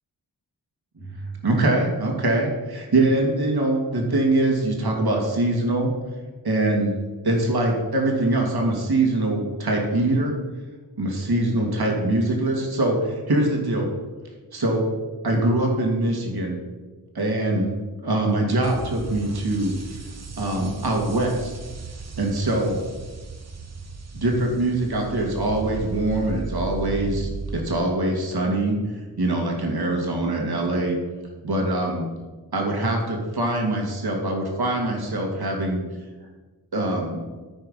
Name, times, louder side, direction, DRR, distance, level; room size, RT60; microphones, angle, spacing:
voice 1, 1.0-5.9 6.4-7.0 7.2-10.3 11.0-13.9 14.5-14.9 15.2-16.6 17.1-17.7 18.0-19.7 20.4-21.5 22.2-22.8 24.1-31.0 31.4-32.1 32.5-35.8 36.7-37.2, right 2 dB, 65° right, 0 dB, 2.2 m, -23 dB
sound 1, 18.6-27.6, right 4 dB, 40° right, 1.0 m, -35 dB
13.5 x 4.6 x 5.6 m, 1.3 s
cardioid pair, 50°, 40 cm